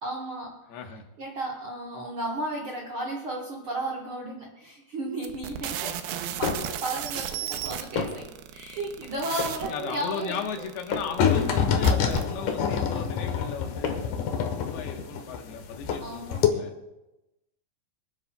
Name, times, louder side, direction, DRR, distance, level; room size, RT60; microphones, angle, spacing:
voice 1, 0.0-0.6 1.2-5.9 6.4-10.4 16.0-16.4, right 1 dB, 60° right, -3 dB, 1.4 m, -34 dB
voice 2, 0.7-1.0 9.6-16.7, left 6 dB, 90° left, 3 dB, 3.2 m, -36 dB
sound 1, 5.2-12.3, right 10 dB, 90° right, 2.7 m, -34 dB
sound 2, 6.0-6.8 7.5-8.4 9.0-9.7 10.4-11.3 12.0-12.8 13.4-14.2, left 5 dB, 50° left, 1.6 m, -34 dB
sound 3, 11.2-16.0 16.3-16.5, left 7 dB, 70° left, 2.4 m, -25 dB
26.0 x 10.0 x 2.3 m, 1.0 s
omnidirectional pair, 4.4 m